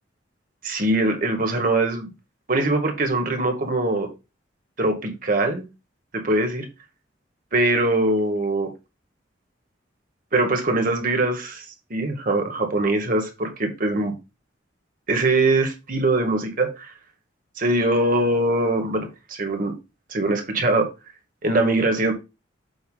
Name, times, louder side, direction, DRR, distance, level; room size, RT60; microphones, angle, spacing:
voice 1, 0.6-2.1 2.5-4.1 4.8-5.6 6.1-6.7 7.5-8.7 10.3-11.6 11.9-14.1 15.1-16.9 17.6-19.7 20.1-20.9 21.4-22.1, right 2 dB, 45° right, 1.5 m, -22 dB
8.0 x 2.8 x 5.5 m
head